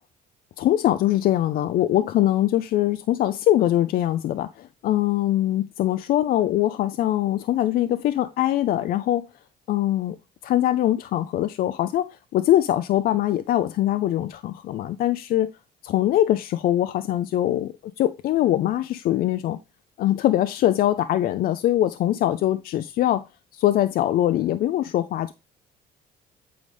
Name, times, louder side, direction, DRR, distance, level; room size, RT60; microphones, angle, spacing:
voice 1, 0.6-9.3 9.7-10.2 10.4-15.5 15.8-19.6 20.0-23.2 23.5-25.3, left 13 dB, 60° left, 0.4 m, -22 dB
8.4 x 4.0 x 3.3 m
cardioid pair, 110°, 17 cm